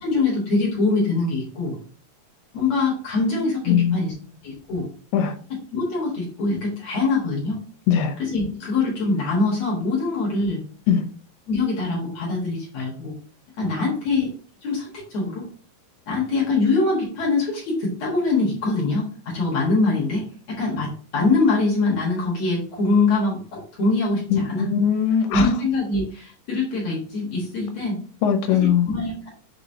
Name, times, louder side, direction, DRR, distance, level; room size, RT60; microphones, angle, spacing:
voice 1, 0.0-1.8 2.5-4.1 4.4-4.9 5.7-7.6 8.3-10.6 11.5-13.1 13.6-14.3 14.6-15.5 16.1-24.2 24.5-24.6 25.3-28.0 28.9-29.3, left 3 dB, 60° left, -3 dB, 2.0 m, -23 dB
voice 2, 3.7-4.1 5.1-5.4 7.9-8.2 10.9-11.1 13.8-13.9 24.3-25.5 28.2-28.9, left 8 dB, 85° left, 5 dB, 2.4 m, -20 dB
6.3 x 3.0 x 2.6 m, 0.42 s
omnidirectional pair, 4.0 m